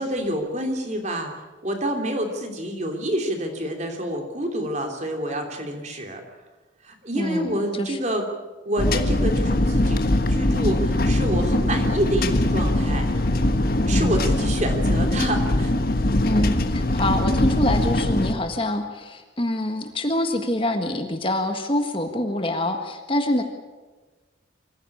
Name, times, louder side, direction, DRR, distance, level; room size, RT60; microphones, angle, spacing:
voice 1, 0.0-1.3 1.6-6.2 6.8-8.3 8.6-13.1 13.9-15.7, right 1 dB, 35° right, 3 dB, 3.2 m, -28 dB
voice 2, 7.1-8.0 13.9-14.2 16.2-23.4, left 1 dB, 25° left, 5 dB, 1.6 m, -25 dB
sound 1, 8.8-18.3, left 1 dB, 50° left, 1.4 m, -22 dB
24.5 x 15.5 x 8.6 m, 1.3 s
head